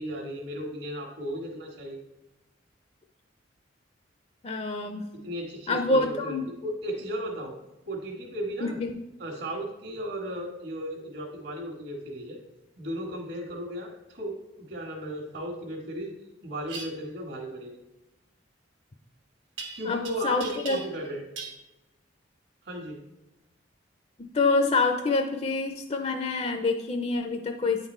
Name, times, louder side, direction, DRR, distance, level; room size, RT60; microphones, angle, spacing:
voice 1, 0.0-2.0 5.2-7.5 7.9-8.8 9.2-12.4 12.8-16.1 16.4-17.7 19.7-21.2 22.6-23.0, equal, 65° right, -6 dB, 1.4 m, -35 dB
voice 2, 4.4-5.0 5.7-6.4 8.6-8.9 19.9-20.8 24.3-27.9, left 3 dB, 30° left, 4 dB, 0.4 m, -26 dB
sound 1, 16.7-16.9 19.6-20.1 20.4-21.1 21.4-21.6, right 4 dB, 85° right, 1.2 m, -38 dB
9.2 x 4.0 x 4.3 m, 0.98 s
head